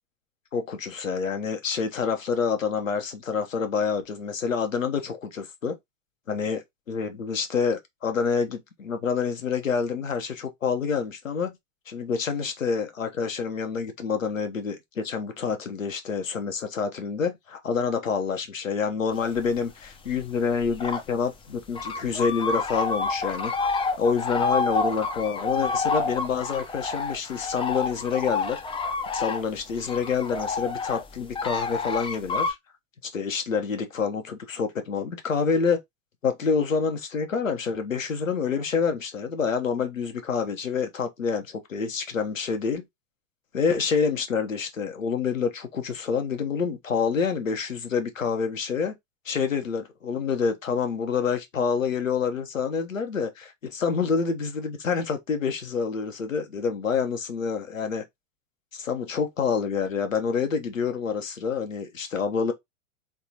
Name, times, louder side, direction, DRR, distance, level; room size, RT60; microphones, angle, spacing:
voice 1, 0.5-5.8 6.3-11.5 11.9-23.5 24.0-28.6 29.1-32.6 33.0-35.8 36.2-42.8 43.5-48.9 49.2-58.0 58.7-62.5, left 5 dB, 80° left, 1.0 m, -27 dB
sound 1, 19.2-19.6 20.1-21.1 21.3-21.4 21.7-32.5, left 4 dB, 15° left, 0.6 m, -29 dB
3.8 x 3.5 x 2.8 m
figure-of-eight pair, 90°, 39 cm